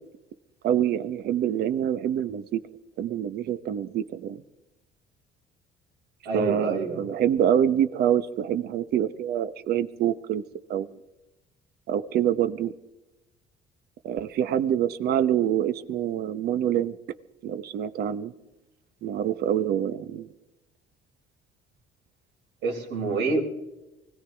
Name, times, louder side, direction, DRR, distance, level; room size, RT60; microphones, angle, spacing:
voice 1, 0.6-2.6 3.0-4.4 6.3-10.4 10.7-10.9 11.9-12.7 14.0-17.0 17.4-18.3 19.0-20.3, right 10 dB, 70° right, 13 dB, 1.0 m, -26 dB
voice 2, 6.2-7.0 22.6-23.4, right 3 dB, 85° right, 0 dB, 4.1 m, -27 dB
24.0 x 16.5 x 3.5 m, 0.98 s
cardioid pair, 110°, 17 cm